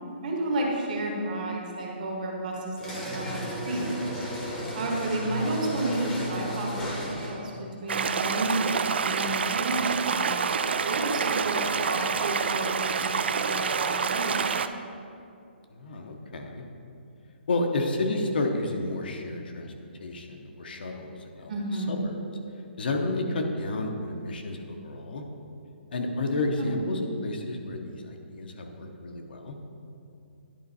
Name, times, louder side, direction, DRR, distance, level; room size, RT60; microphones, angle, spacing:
voice 1, 0.2-3.9 4.7-7.5 7.8-10.3 10.8-14.5 21.5-22.1 26.6-26.7, right 2 dB, 45° right, -1 dB, 1.3 m, -31 dB
sound 1, 2.8-7.5, equal, 10° left, 0.8 m, -34 dB
sound 2, 7.9-14.7, right 6 dB, 65° right, 0.3 m, -27 dB
voice 2, 15.7-16.6 17.5-19.7 20.0-22.2 22.8-25.2 25.9-29.6, left 2 dB, 55° left, 3 dB, 0.8 m, -31 dB
10.5 x 4.5 x 4.1 m, 2.6 s
hypercardioid pair, 175°, 6 cm